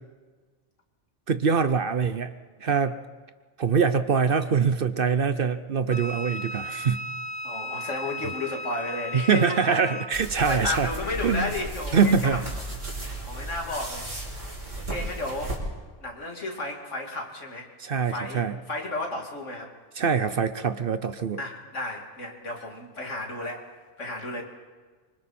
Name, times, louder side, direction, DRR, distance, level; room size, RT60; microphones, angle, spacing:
voice 1, 1.3-2.3 2.6-3.0 3.6-7.0 9.1-10.9 11.2-11.5 11.9-12.4 17.8-18.6 20.0-21.4, right 6 dB, 50° right, 12 dB, 0.9 m, -24 dB
Wind instrument woodwind instrument, 5.9-10.1, left 1 dB, 5° left, 0.9 m, -35 dB
voice 2, 7.4-9.8 10.4-12.5 13.2-14.5 14.8-15.6 16.0-17.7 18.1-19.7 21.4-24.4, left 2 dB, 75° left, 1 dB, 3.0 m, -33 dB
sound 1, 10.1-15.6, right 1 dB, 80° right, 4.7 m, -35 dB
25.5 x 24.5 x 4.4 m, 1.4 s
omnidirectional pair, 1.3 m